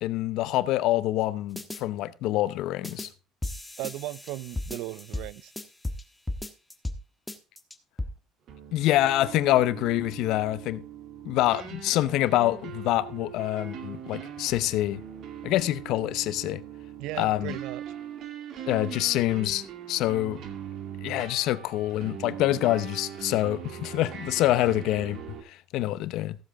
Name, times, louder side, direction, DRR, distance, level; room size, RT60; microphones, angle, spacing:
voice 1, 0.0-3.1 8.7-10.8 11.2-15.0 15.4-16.6 17.2-17.6 18.7-20.4 21.0-25.2 25.4-26.4, left 15 dB, 70° left, 0.8 m, -26 dB
sound 1, 1.6-1.8 2.8-3.1 3.4-6.0 6.3-7.0 7.3-8.1, left 1 dB, 5° left, 1.4 m, -35 dB
voice 2, 3.8-5.5 17.0-17.8, right 17 dB, 75° right, 0.5 m, -36 dB
sound 2, 8.5-25.4, right 9 dB, 55° right, 2.3 m, -41 dB
15.5 x 7.6 x 3.6 m
cardioid pair, 115°, 0 cm